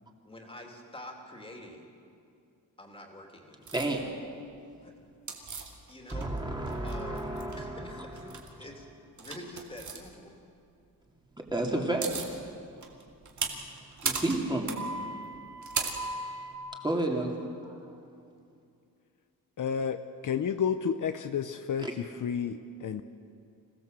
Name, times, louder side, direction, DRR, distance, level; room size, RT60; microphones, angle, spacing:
voice 1, 0.2-1.9 2.8-3.8 4.8-4.9 5.9-6.3 6.8-8.3 8.6-8.9 9.2-10.4, left 1 dB, 15° left, 1 dB, 2.9 m, -46 dB
voice 2, 3.7-4.1 6.1-7.8 11.5-12.1 13.4-13.5 14.0-14.8 16.8-17.4 17.6-17.8 21.8-21.9, right 2 dB, 10° right, 0 dB, 2.6 m, -31 dB
sound 1, 3.7-3.9 5.3-6.4 6.7-7.6 8.1-8.5 9.2-10.0 11.5-11.6 11.8-12.3 12.8-16.5, right 4 dB, 55° right, 2.5 m, -36 dB
voice 3, 19.6-20.0 20.2-23.0, left 7 dB, 60° left, 9 dB, 0.8 m, -31 dB
26.5 x 17.0 x 7.6 m, 2.4 s
wide cardioid pair, 170°, 35 cm